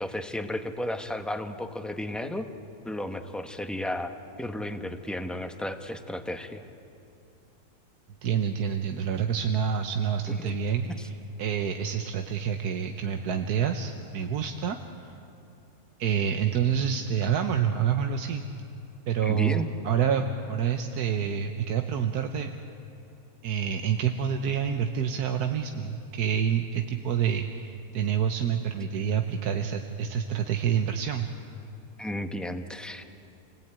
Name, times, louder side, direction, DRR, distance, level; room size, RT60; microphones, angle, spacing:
voice 1, 0.0-2.5 2.8-6.6 10.3-10.6 11.0-11.1 19.2-19.7 32.0-33.0, left 1 dB, ahead, 6 dB, 1.0 m, -33 dB
voice 2, 8.2-11.1 11.4-15.1 16.0-18.4 19.1-22.5 23.4-31.3, right 8 dB, 80° right, 5 dB, 1.5 m, -27 dB
29.5 x 19.5 x 9.0 m, 2.7 s
omnidirectional pair, 1.6 m